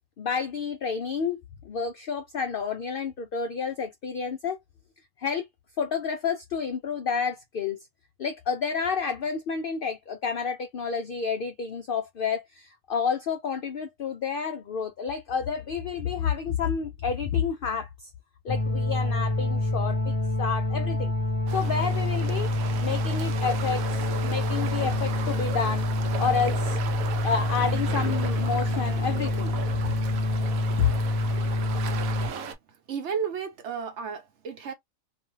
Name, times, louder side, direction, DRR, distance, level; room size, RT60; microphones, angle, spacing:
voice 1, 0.2-4.6 5.2-5.5 5.8-7.8 8.2-18.1 18.4-21.1 21.5-22.5 22.8-25.9 26.2-26.8 27.2-29.5 30.8-30.9, left 6 dB, 75° left, 0.5 m, -30 dB
sound 1, 18.5-32.3, left 1 dB, 30° left, 0.7 m, -27 dB
sound 2, 21.5-32.6, right 5 dB, 85° right, 1.0 m, -36 dB
voice 2, 32.9-34.7, right 6 dB, 60° right, 0.9 m, -32 dB
2.6 x 2.3 x 3.0 m
omnidirectional pair, 1.4 m